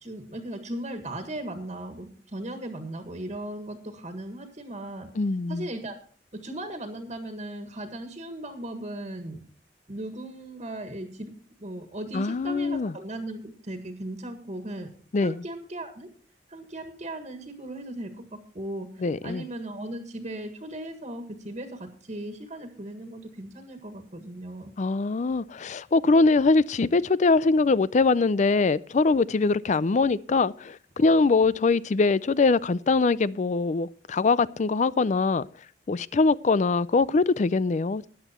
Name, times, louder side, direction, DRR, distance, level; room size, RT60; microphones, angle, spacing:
voice 1, 0.0-5.1 5.5-6.0 6.3-9.4 9.9-11.3 11.6-14.9 15.2-16.1 16.5-18.2 18.5-18.9 19.2-24.7, right 1 dB, 40° right, 1.7 m, -37 dB
voice 2, 5.2-5.7 12.1-12.9 15.1-15.4 19.0-19.4 24.8-35.5 35.9-38.1, left 3 dB, 45° left, 0.4 m, -23 dB
14.0 x 10.0 x 4.4 m
head